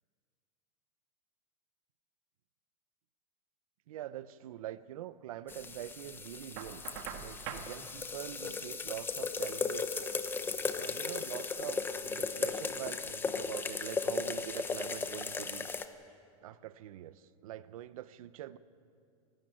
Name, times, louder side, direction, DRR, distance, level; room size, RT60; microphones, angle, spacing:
voice 1, 3.9-6.9 7.2-10.1 10.8-15.7 16.4-18.6, right 12 dB, 85° right, 15 dB, 0.8 m, -44 dB
sound 1, 5.5-15.8, left 4 dB, 10° left, 0.8 m, -36 dB
Knock, 6.6-7.7, right 8 dB, 55° right, 2.0 m, -42 dB
27.5 x 12.0 x 8.9 m, 2.4 s
supercardioid pair, 150°, 17 cm